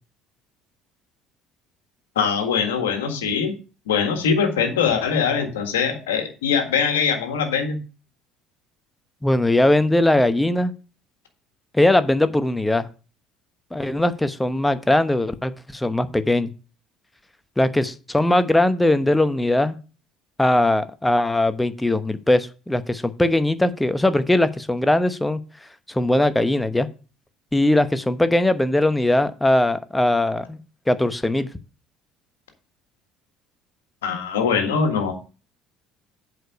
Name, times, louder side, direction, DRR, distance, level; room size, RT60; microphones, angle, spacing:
voice 1, 2.1-3.5 3.9-7.8 34.0-35.1, left 6 dB, 75° left, 5 dB, 1.6 m, -22 dB
voice 2, 9.2-10.7 11.7-12.9 13.7-16.5 17.6-19.8 20.4-25.4 25.9-26.9 27.5-30.6 30.9-31.5, left 1 dB, 10° left, 12 dB, 0.9 m, -20 dB
7.9 x 4.9 x 6.6 m, 0.34 s
figure-of-eight pair, 60°, 0 cm